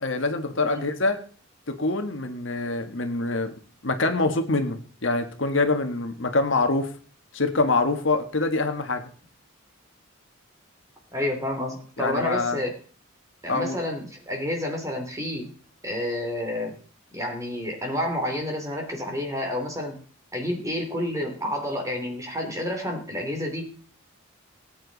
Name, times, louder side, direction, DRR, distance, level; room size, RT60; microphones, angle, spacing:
voice 1, 0.0-1.2 1.8-3.5 3.8-6.9 7.3-9.0 12.0-12.6 13.5-13.8, left 3 dB, 60° left, 6 dB, 1.6 m, -25 dB
voice 2, 11.1-12.7 13.4-15.5 15.8-16.7 17.1-20.0 20.3-23.7, left 1 dB, 15° right, 2 dB, 3.1 m, -29 dB
19.0 x 9.2 x 4.1 m, 0.43 s
head